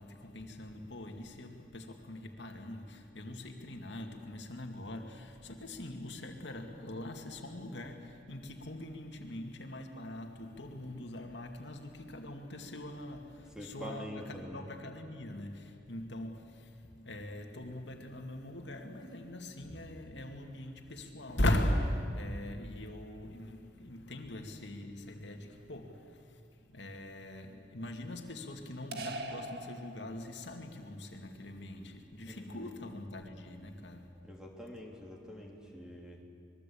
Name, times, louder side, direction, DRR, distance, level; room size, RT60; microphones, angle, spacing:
voice 1, 0.0-34.1, left 1 dB, 70° left, 2.4 m, -40 dB
voice 2, 13.5-14.6 32.2-32.7 34.2-36.2, left 1 dB, 5° right, 3.3 m, -45 dB
sound 1, 28.9-30.6, right 2 dB, 60° right, 2.0 m, -42 dB
25.5 x 21.5 x 8.6 m
head